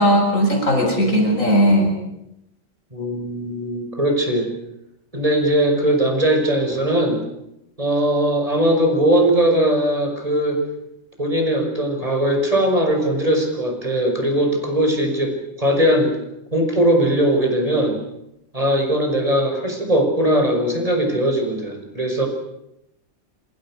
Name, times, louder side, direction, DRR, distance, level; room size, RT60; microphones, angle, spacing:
voice 1, 0.0-1.9, equal, 85° left, 2 dB, 7.7 m, -17 dB
voice 2, 2.9-4.5 5.1-7.2 7.8-10.6 11.2-16.2 16.5-18.0 18.5-22.3, right 1 dB, 30° right, 3 dB, 6.3 m, -19 dB
28.0 x 27.0 x 6.5 m, 0.83 s
omnidirectional pair, 1.3 m